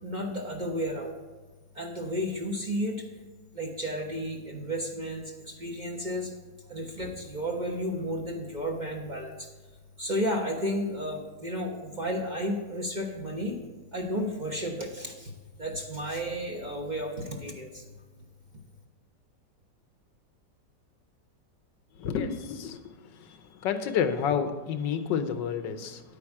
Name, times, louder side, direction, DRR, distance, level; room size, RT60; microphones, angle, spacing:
voice 1, 0.0-1.1 1.7-3.1 3.5-6.3 6.7-9.5 10.0-13.6 13.9-15.3 15.6-17.8, equal, 30° right, 1 dB, 1.0 m, -32 dB
voice 2, 22.0-22.8 23.2-23.3 23.6-26.0, left 7 dB, 85° left, 9 dB, 1.5 m, -29 dB
9.7 x 8.8 x 4.8 m, 1.3 s
omnidirectional pair, 1.9 m